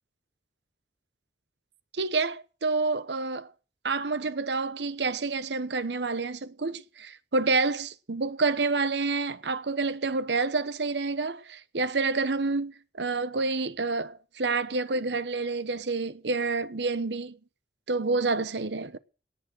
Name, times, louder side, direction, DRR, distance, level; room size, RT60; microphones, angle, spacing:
voice 1, 1.9-3.5 3.8-17.4 17.9-19.0, right 3 dB, 80° right, 1.0 m, -28 dB
18.5 x 6.6 x 7.7 m
head